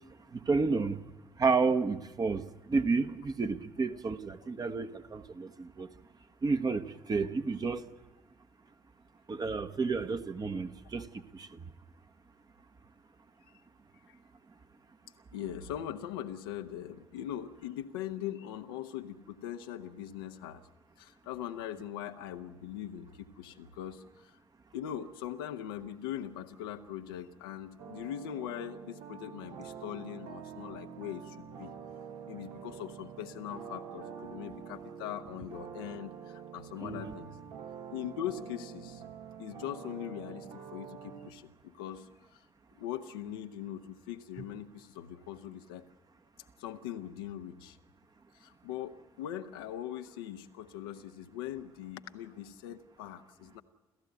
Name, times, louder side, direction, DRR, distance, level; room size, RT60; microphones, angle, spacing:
voice 1, 0.5-1.0 1.4-2.4 2.7-5.9 6.4-7.8 9.3-11.1 36.8-37.1, right 4 dB, 30° right, 1.3 m, -30 dB
voice 2, 15.3-20.7 21.0-24.4 24.7-31.7 32.3-37.3 37.9-39.0 39.4-42.4 42.7-45.9 46.6-47.8 48.3-53.6, left 11 dB, 70° left, 0.9 m, -41 dB
sound 1, 27.8-41.3, right 7 dB, 60° right, 1.4 m, -46 dB
29.0 x 13.5 x 8.1 m
figure-of-eight pair, 45°, 12 cm